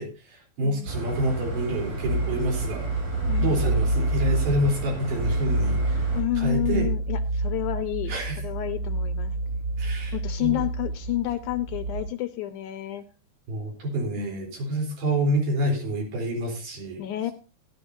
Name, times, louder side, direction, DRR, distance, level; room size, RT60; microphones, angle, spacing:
voice 1, 0.0-2.9 3.4-6.1 6.4-6.9 8.1-8.4 9.8-10.6 13.5-17.0, right 1 dB, 85° right, 0 dB, 5.5 m, -28 dB
voice 2, 0.6-0.9 3.3-3.6 6.1-9.3 10.1-13.0 14.2-14.5 17.0-17.3, left 15 dB, 80° left, 10 dB, 1.9 m, -30 dB
sound 1, 0.9-6.2, right 2 dB, 60° right, 6.1 m, -33 dB
sound 2, 2.1-12.1, right 2 dB, 35° right, 2.2 m, -28 dB
16.5 x 11.5 x 2.6 m, 0.34 s
omnidirectional pair, 4.2 m